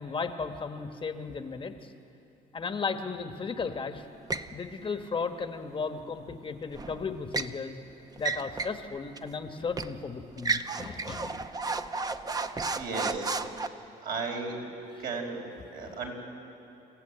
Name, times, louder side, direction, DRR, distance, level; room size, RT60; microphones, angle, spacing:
voice 1, 0.0-1.9 2.5-4.1 4.5-7.8 8.2-11.4 14.9-15.0 15.8-15.9, left 5 dB, 30° left, 7 dB, 1.3 m, -35 dB
sound 1, 4.3-4.5 6.7-7.6 8.2-8.8 9.2-9.3 9.8-10.0 10.4-13.7, right 4 dB, 20° right, 0.8 m, -32 dB
voice 2, 12.5-13.4 14.0-14.6 15.0-15.4 15.7-16.1, right 4 dB, 60° right, 0 dB, 5.0 m, -35 dB
28.0 x 15.0 x 9.1 m, 2.9 s
cardioid pair, 110°, 17 cm